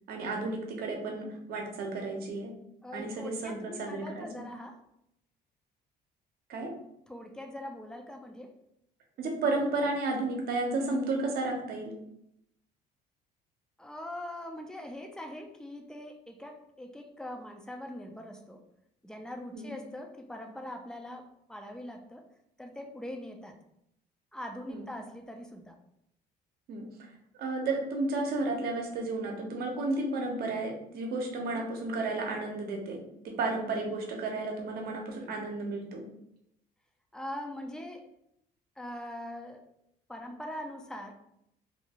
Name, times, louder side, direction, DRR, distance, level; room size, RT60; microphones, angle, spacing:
voice 1, 0.1-2.5 2.9-4.4 6.5-6.7 9.2-11.9 19.5-19.7 24.7-24.9 26.7-26.9 27.4-33.0 33.2-36.0, right 2 dB, 65° right, 1 dB, 0.7 m, -32 dB
voice 2, 2.8-4.8 7.1-8.5 13.8-18.6 19.0-22.2 22.6-23.6 24.3-25.8 37.1-38.1 38.8-39.6 40.1-41.1, left 1 dB, 5° left, 4 dB, 0.3 m, -42 dB
2.6 x 2.3 x 2.8 m, 0.78 s
cardioid pair, 110°, 17 cm